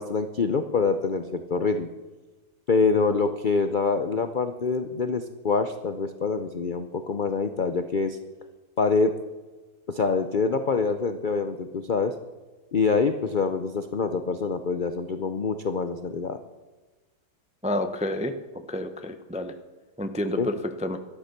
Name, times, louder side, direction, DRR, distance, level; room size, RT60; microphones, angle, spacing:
voice 1, 0.0-1.9 2.7-8.2 8.8-9.1 9.9-12.1 12.7-16.4 20.4-20.5, left 4 dB, 55° left, 9 dB, 0.5 m, -25 dB
voice 2, 17.6-18.3 18.7-19.5 20.0-20.5 20.8-21.0, left 1 dB, 10° right, 8 dB, 0.3 m, -29 dB
12.0 x 12.0 x 6.7 m, 1.2 s
omnidirectional pair, 1.8 m